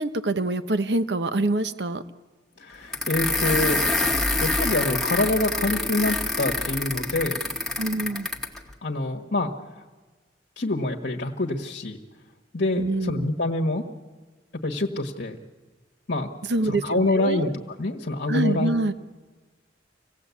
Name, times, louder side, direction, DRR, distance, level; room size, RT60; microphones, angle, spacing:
voice 1, 0.0-2.0 7.8-8.3 12.8-13.3 16.5-17.5 18.3-18.9, right 2 dB, 65° right, 11 dB, 1.0 m, -25 dB
voice 2, 2.6-3.8 4.4-7.4 8.8-9.8 10.6-12.0 12.5-13.8 14.6-15.4 16.1-16.3 16.6-17.5 17.8-18.8, left 2 dB, 60° left, 1 dB, 1.4 m, -26 dB
sound 1, 2.9-8.6, left 2 dB, ahead, 1.7 m, -26 dB
26.0 x 17.5 x 8.3 m, 1.3 s
head